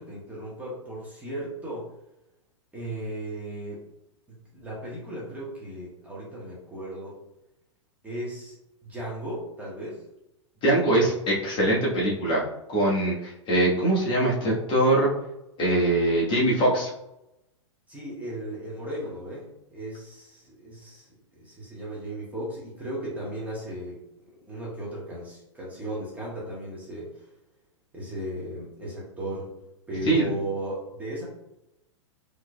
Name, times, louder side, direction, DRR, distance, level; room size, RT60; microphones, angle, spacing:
voice 1, 0.0-1.9 2.7-3.8 4.3-7.2 8.0-8.5 8.8-10.0 17.9-21.1 21.3-24.0 24.5-27.3 27.9-31.2, right 1 dB, 10° right, -6 dB, 1.3 m, -36 dB
voice 2, 10.6-12.4 12.7-15.1 15.6-16.9 30.0-30.3, right 1 dB, 30° left, -5 dB, 1.3 m, -22 dB
3.9 x 3.1 x 2.2 m, 0.87 s
hypercardioid pair, 105°, 16 cm